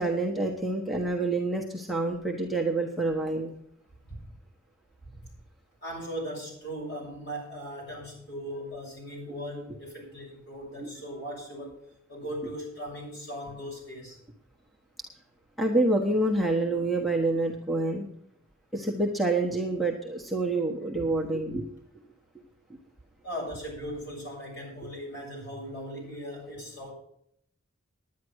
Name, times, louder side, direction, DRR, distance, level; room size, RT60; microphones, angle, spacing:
voice 1, 0.0-3.5 10.8-10.9 15.6-18.1 18.7-21.6, right 2 dB, ahead, 1 dB, 1.3 m, -27 dB
voice 2, 5.8-11.7 12.1-14.2 21.0-21.1 23.2-26.9, equal, 50° left, -1 dB, 6.8 m, -38 dB
10.5 x 10.0 x 6.4 m, 0.70 s
head